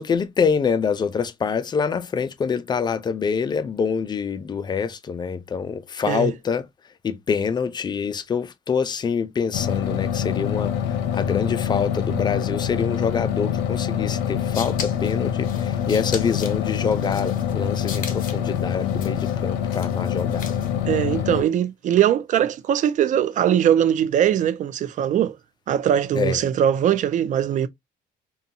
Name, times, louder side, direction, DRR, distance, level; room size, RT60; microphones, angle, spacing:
voice 1, 0.0-6.7 7.0-10.7 11.1-20.6 26.1-26.4, left 6 dB, 25° left, 0.4 m, -25 dB
sound 1, 9.5-21.4, left 9 dB, 90° left, 0.6 m, -25 dB
sound 2, 14.2-20.8, left 6 dB, 55° left, 0.8 m, -38 dB
voice 2, 20.9-25.4 25.7-27.7, right 10 dB, 50° right, 0.4 m, -21 dB
2.7 x 2.2 x 2.6 m
cardioid pair, 110°, 17 cm